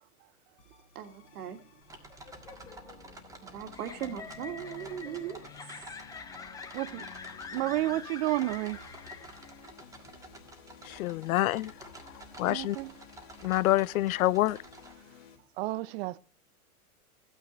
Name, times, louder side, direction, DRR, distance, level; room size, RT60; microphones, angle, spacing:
sound 1, 0.6-15.4, left 7 dB, 35° left, 2.6 m, -54 dB
voice 1, 1.0-1.6 3.4-5.4, right 9 dB, 70° right, 2.0 m, -38 dB
sound 2, 1.8-14.9, right 2 dB, 5° right, 1.7 m, -51 dB
sound 3, 2.1-9.7, left 5 dB, 10° left, 0.5 m, -46 dB
voice 2, 6.7-7.1 7.5-8.8 12.5-12.9 15.6-16.2, right 17 dB, 45° right, 0.6 m, -31 dB
voice 3, 10.9-11.7 12.4-12.8 13.4-14.6, left 16 dB, 65° left, 0.6 m, -26 dB
14.5 x 9.2 x 3.1 m
hypercardioid pair, 125°, 45 cm